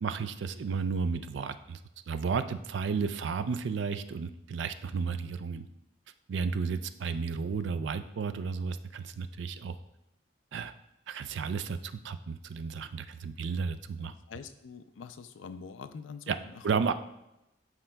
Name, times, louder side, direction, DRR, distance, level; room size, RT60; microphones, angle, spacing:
voice 1, 0.0-1.8 2.1-5.7 6.3-9.7 10.5-10.7 11.1-14.1 16.3-16.4 16.6-16.9, right 5 dB, 65° right, 11 dB, 0.4 m, -33 dB
voice 2, 14.0-16.8, left 5 dB, 75° left, 11 dB, 0.4 m, -45 dB
11.5 x 4.5 x 2.2 m, 0.90 s
head